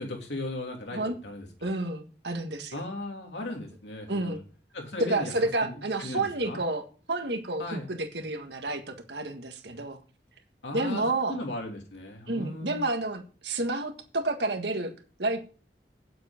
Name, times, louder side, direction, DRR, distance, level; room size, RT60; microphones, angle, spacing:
voice 1, 0.0-1.5 2.7-4.4 4.7-5.3 5.6-6.6 7.6-7.9 10.6-12.8, left 1 dB, 90° left, 1 dB, 3.1 m, -37 dB
voice 2, 1.6-2.8 4.1-4.4 5.0-10.0 10.7-11.4 12.3-15.4, right 2 dB, 80° right, 6 dB, 1.7 m, -30 dB
9.6 x 7.8 x 5.1 m, 0.37 s
head